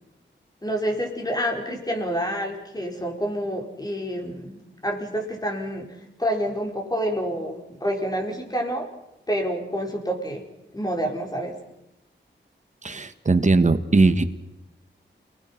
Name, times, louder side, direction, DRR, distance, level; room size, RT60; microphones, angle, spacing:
voice 1, 0.6-5.9 6.2-8.9 9.3-10.4 10.7-11.5, equal, 20° left, 2 dB, 4.9 m, -28 dB
voice 2, 12.8-14.2, right 3 dB, 35° right, 10 dB, 1.6 m, -19 dB
29.5 x 19.5 x 5.9 m, 0.93 s
wide cardioid pair, 125°, 20 cm